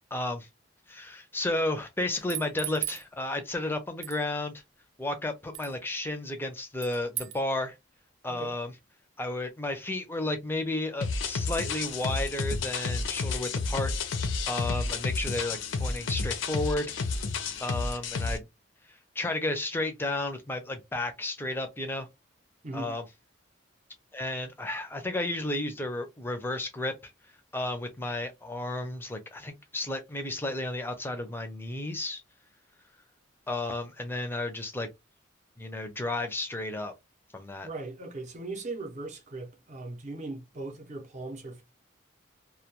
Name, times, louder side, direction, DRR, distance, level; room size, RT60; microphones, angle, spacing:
voice 1, 0.1-0.5 0.9-4.6 5.0-7.7 8.2-8.7 9.2-13.9 14.5-16.9 17.6-18.5 19.2-22.1 22.7-23.0 24.1-27.1 27.5-32.2 33.5-34.9 35.6-36.9 37.3-37.7, left 2 dB, 10° left, 0.4 m, -32 dB
sound 1, 2.1-3.0 4.0-4.2 5.5-5.7 6.8-7.4, right 12 dB, 90° right, 0.4 m, -36 dB
sound 2, 11.0-18.4, left 4 dB, 70° left, 0.5 m, -31 dB
voice 2, 22.6-23.0 37.6-41.6, right 2 dB, 35° right, 0.6 m, -39 dB
2.2 x 2.2 x 2.8 m
head